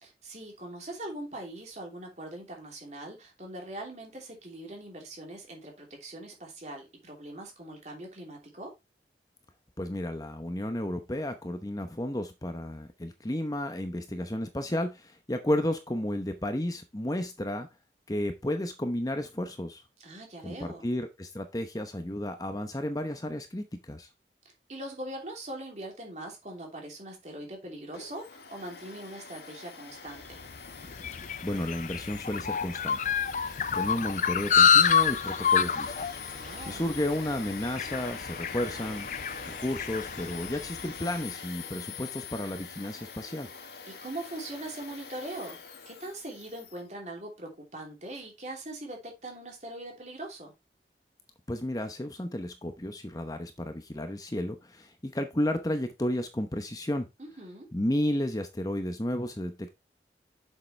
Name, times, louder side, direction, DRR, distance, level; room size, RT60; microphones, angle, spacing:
voice 1, 0.0-8.7 20.0-20.9 24.7-30.4 36.3-36.9 43.9-45.6 45.9-50.5 57.2-57.7, right 1 dB, 40° right, 3.0 m, -41 dB
voice 2, 9.8-17.7 18.1-19.8 20.4-24.1 31.4-33.0 33.4-36.2 36.6-39.1 39.4-43.5 51.5-57.1 57.7-59.7, left 1 dB, 20° left, 0.9 m, -32 dB
Domestic sounds home sounds, 27.9-46.8, left 5 dB, 65° left, 1.7 m, -44 dB
sound 1, 30.3-40.9, left 7 dB, 45° left, 0.5 m, -28 dB
7.8 x 6.7 x 3.3 m
head